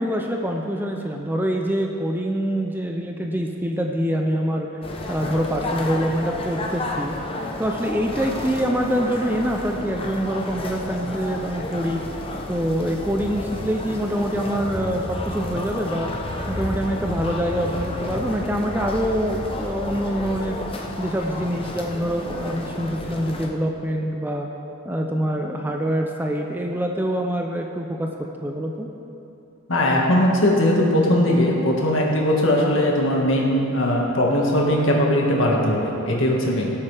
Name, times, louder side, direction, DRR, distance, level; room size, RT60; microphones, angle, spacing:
voice 1, 0.0-4.7 5.1-7.1 7.6-12.0 12.5-16.1 16.5-20.6 21.0-24.5 24.9-28.1 28.4-28.9, equal, 10° right, 2 dB, 0.5 m, -25 dB
sound 1, 4.8-23.5, left 2 dB, 25° left, 0.8 m, -31 dB
voice 2, 29.7-36.7, left 1 dB, 60° left, -2 dB, 1.8 m, -19 dB
17.5 x 8.3 x 3.4 m, 2.9 s
head